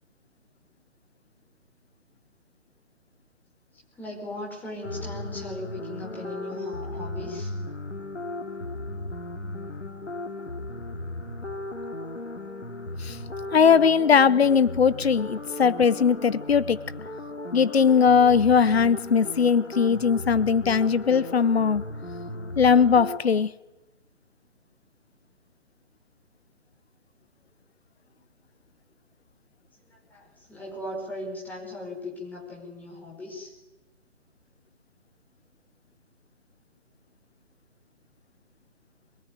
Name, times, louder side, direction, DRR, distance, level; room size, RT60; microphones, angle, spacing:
voice 1, 4.0-7.5 29.9-33.6, left 2 dB, 5° left, 4.8 m, -38 dB
sound 1, 4.8-23.2, left 2 dB, 75° left, 3.1 m, -36 dB
voice 2, 13.5-16.8 17.5-21.8 22.6-23.5, left 6 dB, 55° left, 0.9 m, -20 dB
22.5 x 22.5 x 9.4 m
figure-of-eight pair, 140°, 37 cm